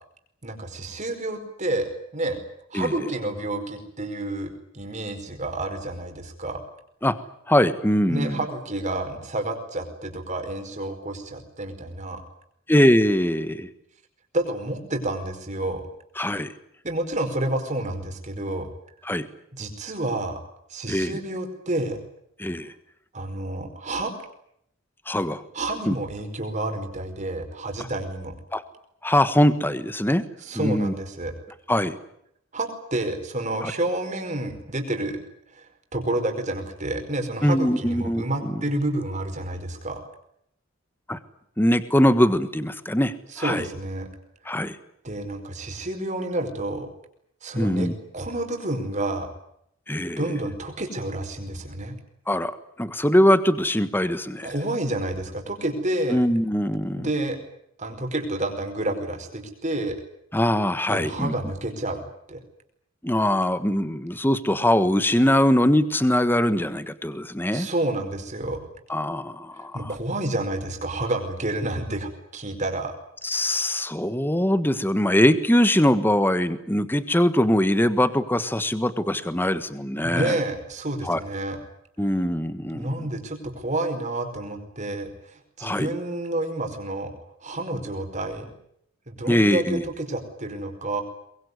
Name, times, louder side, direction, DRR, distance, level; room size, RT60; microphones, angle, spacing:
voice 1, 0.4-2.4 2.7-6.6 8.1-12.2 14.3-15.8 16.8-18.7 19.5-20.4 20.7-22.0 23.1-24.1 25.5-28.3 30.4-31.3 32.5-35.2 35.5-35.7 35.9-40.0 43.3-44.1 45.0-46.9 47.4-49.3 50.2-51.9 54.4-56.2 57.0-57.4 57.8-59.9 60.9-62.0 62.3-62.4 67.5-68.6 69.7-72.9 80.0-81.6 82.7-87.1 87.4-88.5 89.1-91.0, right 1 dB, 35° right, 5 dB, 5.0 m, -29 dB
voice 2, 7.5-8.4 12.7-13.7 16.2-16.5 19.1-19.3 20.9-21.2 22.4-22.7 25.1-25.4 25.9-26.0 28.5-28.6 29.0-30.2 30.5-30.9 31.7-32.0 33.6-33.7 37.4-38.2 41.1-41.2 41.6-43.7 44.5-44.8 47.6-47.9 49.9-50.2 52.3-52.5 52.8-54.5 56.1-57.1 60.3-61.3 63.0-67.7 68.9-69.8 73.2-80.4 81.0-81.2 82.0-82.9 85.6-85.9 89.3-89.8, left 1 dB, 10° left, 12 dB, 1.4 m, -22 dB
23.5 x 22.0 x 9.7 m, 0.73 s
head